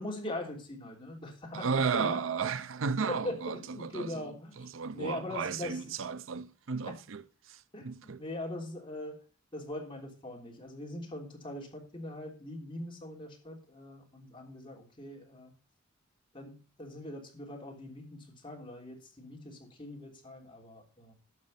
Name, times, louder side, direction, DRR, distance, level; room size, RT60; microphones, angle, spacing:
voice 1, 0.0-1.7 1.9-2.2 3.1-4.7 4.9-5.8 7.7-9.2 9.5-15.5 16.3-21.1, left 1 dB, 25° left, 3.3 m, -41 dB
voice 2, 1.5-4.1 4.6-7.2 7.5-8.2, right 5 dB, 70° right, 0.6 m, -34 dB
12.0 x 6.6 x 5.7 m
head